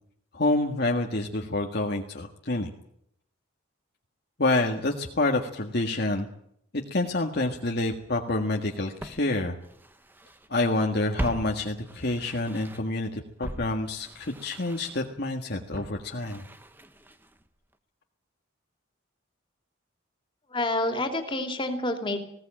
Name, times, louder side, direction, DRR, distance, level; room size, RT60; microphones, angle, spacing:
voice 1, 0.3-2.7 4.4-6.3 6.7-9.6 10.5-16.4, left 2 dB, 50° left, 1 dB, 1.7 m, -28 dB
Walk footsteps, 8.3-8.4 9.0-10.5 10.8-13.0 13.4-17.5 17.7-17.8, equal, 10° right, 1.1 m, -40 dB
voice 2, 20.5-22.2, left 2 dB, 25° left, 4 dB, 3.0 m, -28 dB
20.0 x 17.5 x 8.9 m, 0.72 s
head